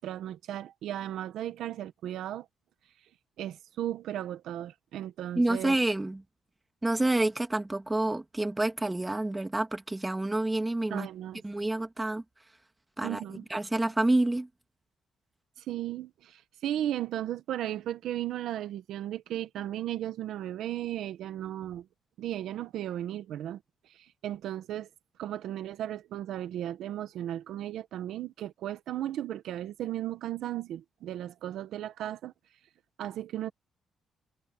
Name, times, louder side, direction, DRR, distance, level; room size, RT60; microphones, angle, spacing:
voice 1, 0.0-2.5 3.4-5.8 10.9-11.4 13.0-13.4 15.6-21.9 22.2-23.6 23.9-24.9 25.2-32.3 33.0-33.5, right 12 dB, 80° right, 1.3 m, -35 dB
voice 2, 5.4-6.2 6.8-11.1 11.4-12.2 13.0-13.2 13.5-14.5, right 2 dB, 15° right, 1.9 m, -28 dB
cardioid pair, 90°, 0 cm